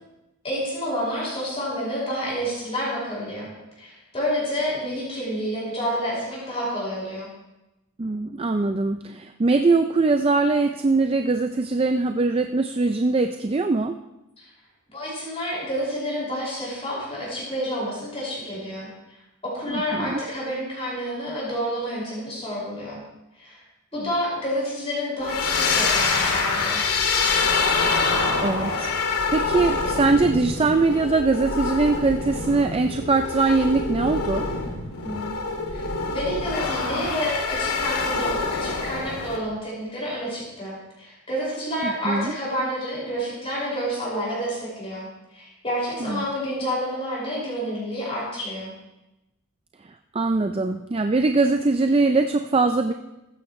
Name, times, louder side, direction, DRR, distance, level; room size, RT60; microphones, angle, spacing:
voice 1, 0.4-7.3 14.4-14.5 14.9-18.9 19.4-23.0 23.4-23.6 23.9-26.8 35.0-35.4 35.7-35.9 36.1-48.7, equal, 25° left, -7 dB, 5.6 m, -29 dB
voice 2, 8.0-14.0 19.7-20.2 28.4-34.5 41.8-42.3 46.0-46.2 50.1-52.9, right 3 dB, 25° right, 7 dB, 0.4 m, -22 dB
sound 1, 25.2-39.4, left 4 dB, 85° left, 2.4 m, -25 dB
15.5 x 13.0 x 3.2 m, 0.95 s
head